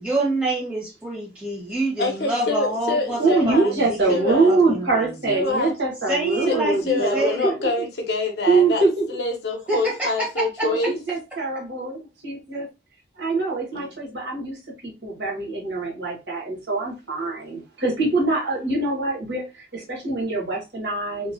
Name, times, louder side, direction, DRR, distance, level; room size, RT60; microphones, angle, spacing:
voice 1, 0.0-5.1 6.1-7.5 9.7-10.7, right 2 dB, 5° right, 1.3 m, -27 dB
voice 2, 2.0-3.7 4.1-4.5 5.3-5.7 6.5-6.6 6.9-11.0 13.7-13.9, left 3 dB, 65° left, 0.7 m, -26 dB
voice 3, 3.2-7.9 8.5-9.0 10.6-12.7 13.2-21.3, right 3 dB, 75° right, 1.3 m, -24 dB
2.9 x 2.3 x 2.6 m
head